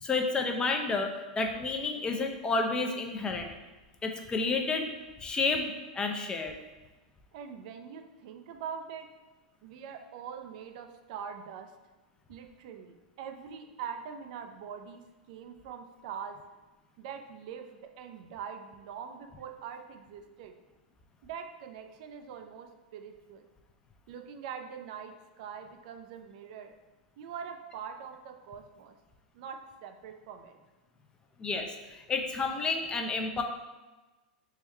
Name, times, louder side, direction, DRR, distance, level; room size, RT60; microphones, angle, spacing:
voice 1, 0.0-3.5 4.0-4.9 5.2-6.5 31.4-33.4, left 3 dB, 20° left, 4 dB, 0.4 m, -30 dB
voice 2, 7.3-9.1 9.6-11.7 12.3-16.4 17.0-20.5 21.2-23.5 24.1-26.7 27.2-29.0 29.3-30.6, right 7 dB, 60° right, 6 dB, 0.4 m, -43 dB
3.5 x 2.2 x 4.3 m, 1.2 s
hypercardioid pair, 110°, 4 cm